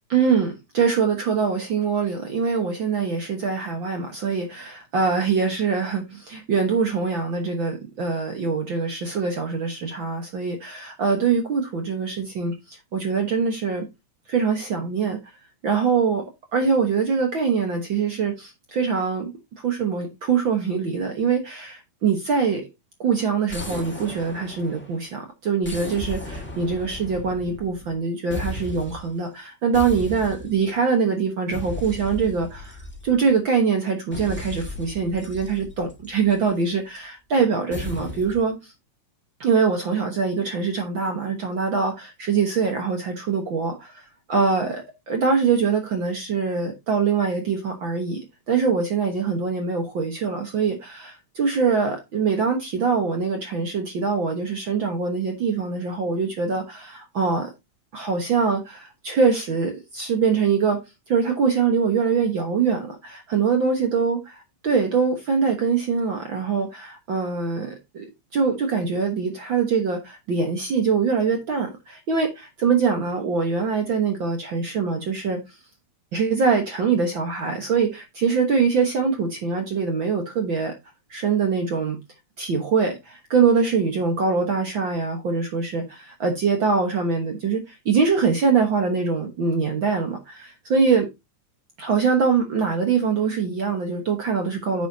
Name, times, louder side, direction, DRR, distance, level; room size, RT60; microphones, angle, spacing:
voice 1, 0.1-13.9 14.3-15.2 15.6-16.2 16.5-19.3 19.6-22.6 23.0-32.8 33.0-38.6 39.4-43.9 44.3-57.5 57.9-60.8 61.1-64.2 64.6-75.4 76.1-80.7 81.1-82.0 82.4-91.1 91.8-94.9, right 5 dB, 55° right, 1.4 m, -23 dB
sound 1, 23.5-25.1 25.6-28.0 28.3-29.1 29.7-30.8 31.5-33.4 34.1-36.5 37.7-38.5, left 1 dB, 20° left, 0.3 m, -36 dB
10.0 x 6.6 x 2.7 m
omnidirectional pair, 3.6 m